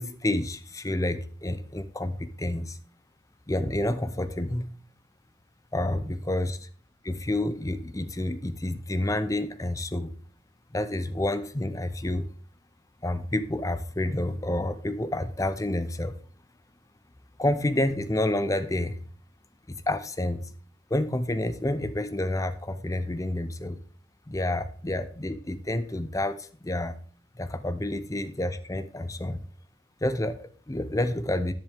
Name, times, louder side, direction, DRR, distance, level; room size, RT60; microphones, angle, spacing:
voice 1, 0.0-2.8 3.5-4.8 5.7-6.5 7.0-10.1 10.7-12.3 13.0-16.2 17.4-19.1 19.7-20.5 20.9-23.8 24.3-27.0 27.4-29.4 30.0-31.5, left 1 dB, 15° left, 12 dB, 0.6 m, -29 dB
10.5 x 10.0 x 3.6 m, 0.42 s
head